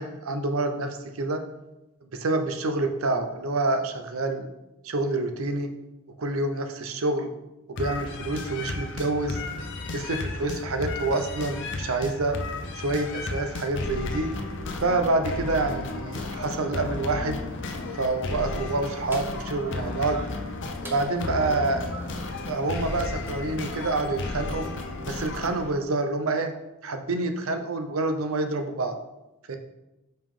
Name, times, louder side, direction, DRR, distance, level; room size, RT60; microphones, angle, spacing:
voice 1, 0.0-1.4 2.2-4.5 4.8-5.7 6.2-7.3 7.7-9.4 9.9-12.4 12.8-14.3 14.8-17.4 18.0-20.2 20.9-21.9 22.5-24.7 25.1-26.5 26.8-29.0 29.5-29.6, right 2 dB, 85° right, 6 dB, 0.7 m, -27 dB
sound 1, 7.8-25.7, left 2 dB, 60° left, 0.6 m, -33 dB
sound 2, 18.0-23.2, right 2 dB, 10° right, 0.7 m, -47 dB
5.3 x 5.1 x 3.7 m, 0.96 s
head